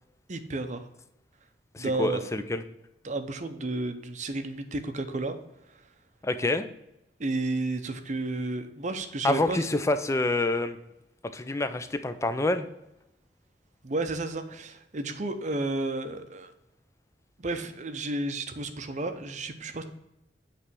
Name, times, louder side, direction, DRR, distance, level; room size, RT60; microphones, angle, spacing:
voice 1, 0.3-0.9 1.8-2.3 3.0-5.4 7.2-9.7 13.8-16.5 17.4-19.9, right 2 dB, 40° right, 8 dB, 0.7 m, -32 dB
voice 2, 1.7-2.6 6.2-6.7 9.2-10.8 11.3-12.7, left 2 dB, 15° left, 10 dB, 0.4 m, -27 dB
8.6 x 3.3 x 6.1 m, 0.87 s
head